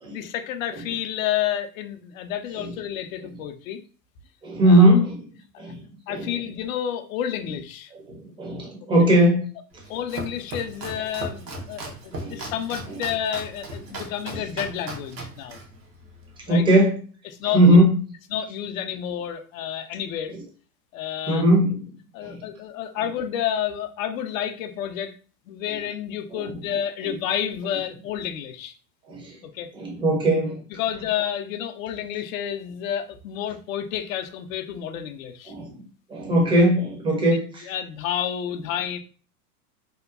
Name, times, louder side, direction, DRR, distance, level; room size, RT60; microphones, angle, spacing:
voice 1, 0.1-3.8 4.6-4.9 5.5-5.7 6.1-7.9 9.0-9.1 9.9-15.6 16.5-16.7 17.2-17.8 18.3-20.3 20.9-21.4 22.1-25.1 25.5-28.7 29.4-29.7 30.7-35.5 37.3-39.0, left 10 dB, 55° left, 8 dB, 0.5 m, -30 dB
voice 2, 4.4-5.3 5.6-5.8 6.1-6.3 8.1-9.5 12.1-12.5 14.3-14.4 16.5-17.0 17.5-18.0 21.3-21.8 22.2-22.4 25.7-25.8 26.3-26.5 27.1-27.2 29.1-29.4 29.7-30.6 35.5-35.8 36.1-37.7, right 1 dB, 10° right, -1 dB, 0.5 m, -19 dB
Domestic sounds home sounds, 9.7-16.7, right 2 dB, 85° right, 0.8 m, -37 dB
2.8 x 2.2 x 2.3 m, 0.40 s
hypercardioid pair, 105°, 49 cm